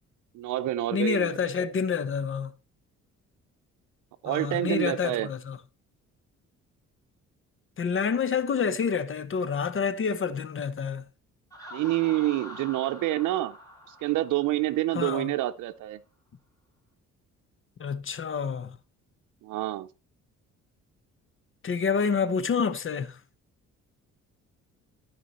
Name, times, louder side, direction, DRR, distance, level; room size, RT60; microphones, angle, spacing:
voice 1, 0.3-1.3 4.2-5.3 11.7-13.6 13.9-16.0 19.4-19.9, right 15 dB, 90° right, 0.6 m, -27 dB
voice 2, 0.9-2.5 4.2-5.6 7.8-11.0 14.9-15.3 17.8-18.8 21.6-23.2, left 6 dB, 45° left, 1.0 m, -28 dB
Laughter, 11.5-15.2, left 1 dB, 10° left, 4.4 m, -45 dB
13.5 x 4.7 x 4.2 m
cardioid pair, 90°, 30 cm